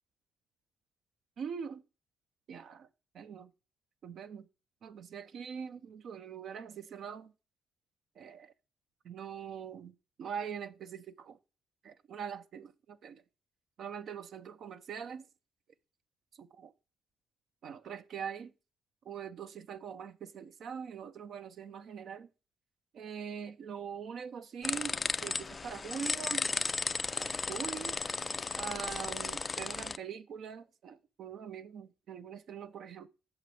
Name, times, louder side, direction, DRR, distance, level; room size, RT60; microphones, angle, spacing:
voice 1, 1.4-1.8 2.5-2.9 3.1-3.5 4.0-4.5 4.8-7.3 8.2-8.5 9.0-11.4 11.8-13.2 13.8-15.2 16.4-16.7 17.6-18.5 19.0-22.3 22.9-26.5 27.2-28.0 28.5-33.1, right 7 dB, 65° right, 0.6 m, -43 dB
sound 1, 24.6-30.0, left 4 dB, 30° left, 0.4 m, -35 dB
8.0 x 6.8 x 3.1 m
cardioid pair, 90°, 0 cm